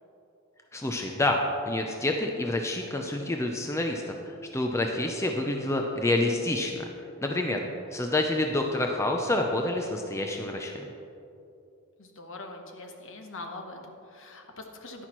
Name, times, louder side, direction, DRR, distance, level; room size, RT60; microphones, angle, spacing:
voice 1, 0.7-1.4 1.7-6.9 7.2-7.6 7.9-10.9, left 2 dB, 10° left, 2 dB, 0.4 m, -28 dB
voice 2, 7.3-7.7 12.0-15.1, left 2 dB, 60° left, 4 dB, 1.0 m, -43 dB
10.5 x 10.0 x 3.0 m, 2.7 s
head